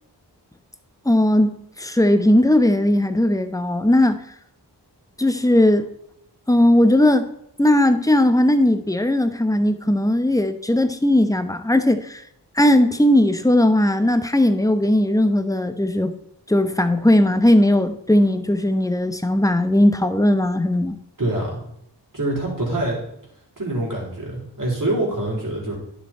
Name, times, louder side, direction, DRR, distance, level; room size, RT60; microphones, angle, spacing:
voice 1, 1.0-4.2 5.2-5.9 6.5-7.3 7.6-12.2 12.6-16.1 16.5-21.0, left 1 dB, 10° left, 0.9 m, -18 dB
voice 2, 21.2-21.6 22.1-23.0 23.6-25.8, right 1 dB, 50° right, 4.5 m, -25 dB
10.5 x 6.6 x 4.4 m
wide cardioid pair, 50°, 42 cm